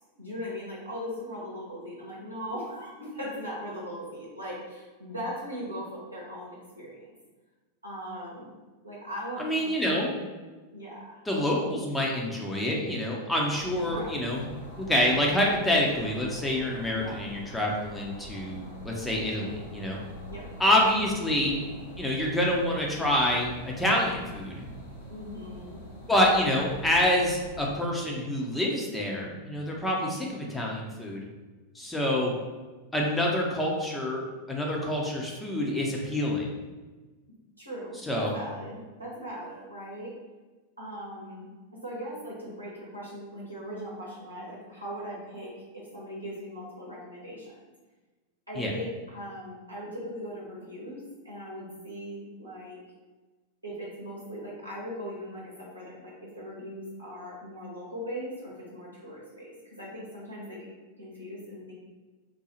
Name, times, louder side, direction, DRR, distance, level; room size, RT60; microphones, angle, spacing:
voice 1, 0.1-7.0 7.8-8.5 8.8-10.1 10.7-11.2 13.8-14.2 16.9-17.2 20.3-20.5 25.1-25.8 29.9-30.1 37.6-40.2 40.8-41.5 41.8-47.6 48.5-52.8 53.6-60.7 61.0-61.8, equal, 85° right, -5 dB, 0.8 m, -39 dB
voice 2, 9.4-10.1 11.3-14.5 14.8-20.0 20.6-21.6 22.0-24.6 26.1-31.2 31.7-32.3 32.9-36.5 38.1-38.3 48.6-48.7, left 1 dB, 5° left, -2 dB, 0.6 m, -27 dB
sound 1, 13.5-27.6, equal, 75° left, 0.8 m, -44 dB
3.8 x 2.3 x 2.9 m, 1.3 s
figure-of-eight pair, 90°, 0 cm